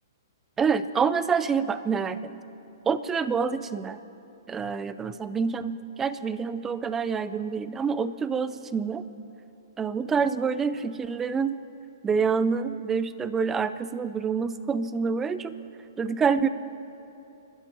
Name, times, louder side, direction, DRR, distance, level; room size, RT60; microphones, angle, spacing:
voice 1, 0.6-2.3 2.9-4.0 4.5-9.0 9.8-11.6 12.0-15.5 16.0-16.5, right 5 dB, 15° right, 14 dB, 0.5 m, -27 dB
29.0 x 13.0 x 3.0 m, 2.9 s
hypercardioid pair, 130°, 2 cm